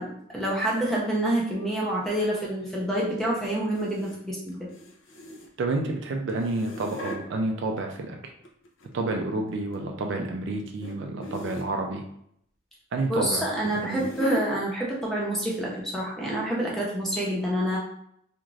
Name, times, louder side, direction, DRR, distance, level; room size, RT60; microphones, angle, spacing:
voice 1, 0.0-4.7 13.1-17.8, right 1 dB, ahead, -5 dB, 0.6 m, -27 dB
sound 1, 0.6-0.8 3.7-4.2 4.5-5.7 6.3-7.2 8.2-9.1 9.5-9.8 10.8-11.0 11.2-11.7 13.2-14.5 15.3-15.5 15.8-15.9 16.4-16.5, right 1 dB, 65° left, 0.5 m, -38 dB
voice 2, 5.6-8.3 8.9-12.0 12.9-13.5 13.8-14.0, right 2 dB, 55° right, 2 dB, 0.3 m, -29 dB
2.5 x 2.4 x 3.1 m, 0.71 s
head